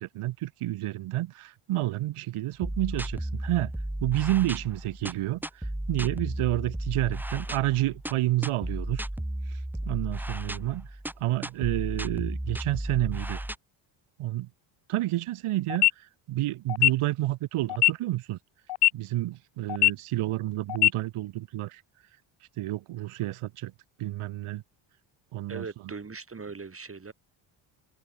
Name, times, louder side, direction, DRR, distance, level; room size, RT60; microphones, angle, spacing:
voice 1, 0.0-3.7 4.0-9.1 9.9-10.9 11.2-13.4 14.2-14.5 14.9-18.4 18.9-21.8 22.6-23.7 24.0-24.6 25.3-25.7, right 16 dB, 90° right, 2.6 m, -29 dB
sound 1, 2.6-13.5, right 1 dB, 5° right, 0.9 m, -34 dB
sound 2, 15.7-15.9 16.7-16.9 17.7-17.9 18.7-18.9 19.7-19.9 20.7-20.9, left 15 dB, 55° left, 0.6 m, -20 dB
voice 2, 25.5-27.1, right 4 dB, 25° right, 5.0 m, -39 dB
cardioid pair, 110°, 49 cm